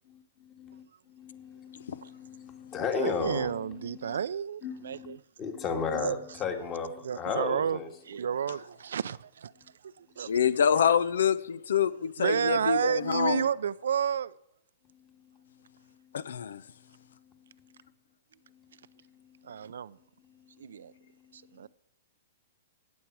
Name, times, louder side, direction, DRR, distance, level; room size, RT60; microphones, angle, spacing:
voice 1, 1.1-4.2 4.6-5.1 5.4-7.9, left 5 dB, 25° left, 2.0 m, -34 dB
voice 2, 2.9-5.2 5.7-6.2 7.0-7.8 8.0-9.5 9.8-10.3 12.2-14.3 19.4-20.0 20.6-20.9 21.3-21.7, right 8 dB, 85° right, 0.5 m, -31 dB
voice 3, 10.3-13.4 16.1-16.6, left 8 dB, 85° left, 0.6 m, -26 dB
18.0 x 7.3 x 4.7 m
hypercardioid pair, 150°, 0 cm